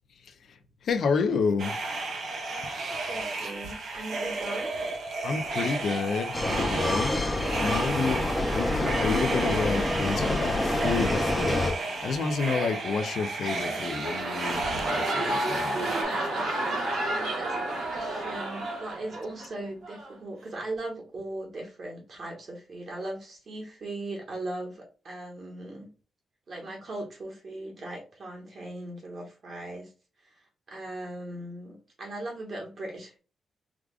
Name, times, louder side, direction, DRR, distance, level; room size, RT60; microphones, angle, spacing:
voice 1, 0.8-1.8 5.2-15.9, left 5 dB, 55° left, 0.4 m, -30 dB
sound 1, 1.6-16.0, right 3 dB, 60° right, 1.0 m, -33 dB
voice 2, 2.7-4.7 16.9-25.9 26.5-29.9 30.3-33.2, right 2 dB, 40° right, 1.3 m, -39 dB
sound 2, 6.3-11.7, left 1 dB, 10° left, 0.6 m, -27 dB
sound 3, 13.6-19.5 19.8-20.2, right 1 dB, 85° right, 1.3 m, -31 dB
4.8 x 2.4 x 2.4 m
wide cardioid pair, 175°, 0 cm